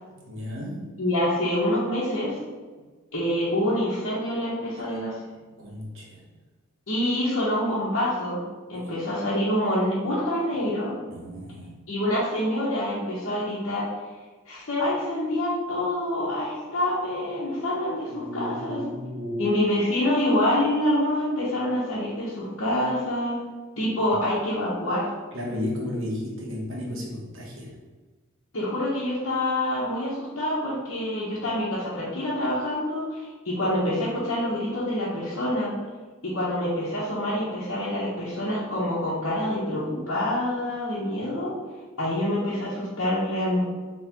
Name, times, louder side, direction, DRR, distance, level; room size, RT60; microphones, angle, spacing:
voice 1, 0.3-0.9 5.6-6.2 8.8-8.9 11.1-11.7 18.1-19.6 25.3-27.7, left 1 dB, 70° right, -3 dB, 1.1 m, -33 dB
voice 2, 1.0-2.4 3.1-5.2 6.9-8.4 8.7-10.9 11.9-13.9 14.5-18.8 19.4-23.4 23.8-25.1 28.5-35.7 36.2-41.5 42.0-43.6, left 1 dB, 70° left, -10 dB, 1.1 m, -26 dB
4.3 x 3.3 x 3.6 m, 1.3 s
head